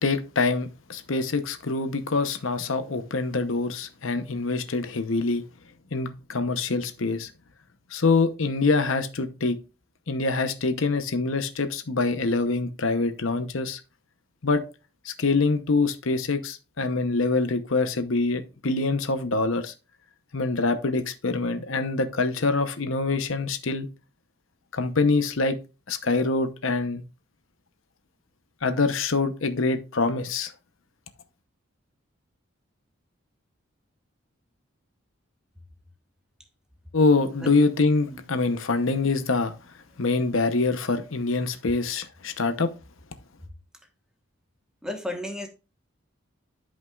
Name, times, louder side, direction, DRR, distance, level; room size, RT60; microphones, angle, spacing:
voice 1, 0.0-5.4 5.9-7.3 7.9-9.6 10.1-13.8 14.4-14.6 15.0-19.7 20.3-23.9 24.7-25.6 25.9-27.0 28.6-30.5 36.9-39.5 40.0-42.7, left 3 dB, 75° left, 0.9 m, -25 dB
voice 2, 44.8-45.5, left 1 dB, 5° right, 1.2 m, -33 dB
12.5 x 5.4 x 2.4 m
head